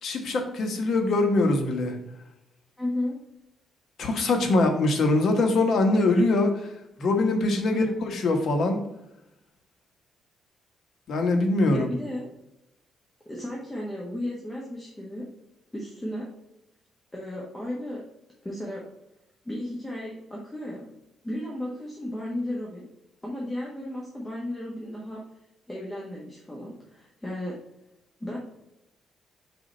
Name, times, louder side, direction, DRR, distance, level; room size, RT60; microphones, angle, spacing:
voice 1, 0.0-2.0 4.0-6.5 7.0-8.8 11.1-11.9, left 2 dB, 60° left, 4 dB, 1.2 m, -23 dB
voice 2, 2.8-3.2 7.7-8.0 11.7-12.3 13.2-15.2 15.7-16.3 17.1-18.0 18.4-18.8 19.4-20.9 21.2-22.8 23.2-25.2 25.7-27.6 28.2-28.4, left 1 dB, 15° left, -4 dB, 1.4 m, -34 dB
4.9 x 3.8 x 5.3 m, 0.87 s
cardioid pair, 90°, 0 cm